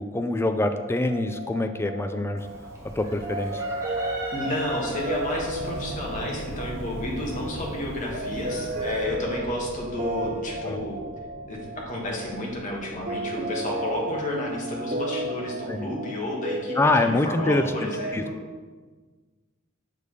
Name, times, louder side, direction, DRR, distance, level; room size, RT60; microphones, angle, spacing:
voice 1, 0.0-2.5 3.0-3.6 10.7-10.8 15.7-15.9 16.8-17.9 18.1-18.2, left 2 dB, 10° left, 7 dB, 0.3 m, -25 dB
sound 1, 0.7-18.1, right 1 dB, 45° right, 0.7 m, -34 dB
Chicken rooster, 2.4-9.1, right 1 dB, 15° right, 1.0 m, -39 dB
voice 2, 4.3-11.0 11.5-18.3, left 1 dB, 40° left, -2 dB, 1.3 m, -31 dB
sound 2, 4.5-15.9, equal, 80° left, 1.2 m, -41 dB
6.7 x 5.4 x 3.2 m, 1.4 s
head